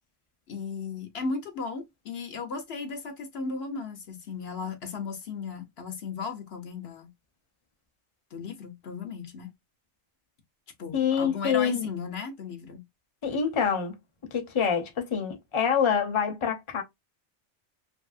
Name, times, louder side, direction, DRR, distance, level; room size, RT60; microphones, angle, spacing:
voice 1, 0.5-7.1 8.3-9.5 10.8-12.8, left 4 dB, 65° left, 0.9 m, -36 dB
voice 2, 10.9-11.9 13.2-13.9 14.3-16.8, left 7 dB, 30° left, 0.7 m, -26 dB
2.9 x 2.7 x 2.4 m
omnidirectional pair, 1.2 m